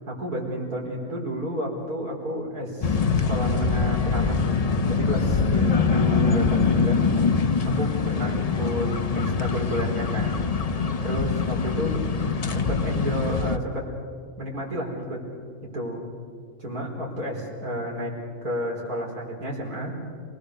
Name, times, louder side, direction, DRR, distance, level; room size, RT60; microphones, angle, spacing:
voice 1, 0.2-3.0 3.2-7.1 7.6-10.4 11.0-12.0 12.5-13.8 14.4-15.2 15.7-16.0 16.6-18.1 18.4-19.9, equal, 80° right, -2 dB, 5.1 m, -31 dB
sound 1, 2.8-13.6, left 5 dB, 35° left, 0.6 m, -23 dB
28.5 x 19.0 x 6.8 m, 2.2 s
omnidirectional pair, 1.6 m